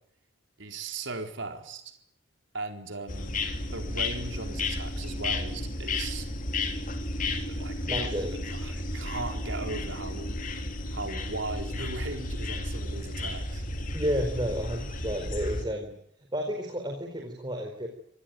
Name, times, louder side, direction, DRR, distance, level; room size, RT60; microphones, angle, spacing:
voice 1, 0.6-2.0 2.5-3.4 3.6-6.3 7.5-10.4 10.9-13.6, right 3 dB, 65° right, 5 dB, 4.2 m, -38 dB
sound 1, 3.1-15.7, left 2 dB, 40° left, 3.3 m, -33 dB
voice 2, 7.9-8.3 13.9-15.9 16.3-17.9, equal, 20° right, 3 dB, 4.4 m, -31 dB
27.0 x 20.0 x 9.2 m, 0.71 s
head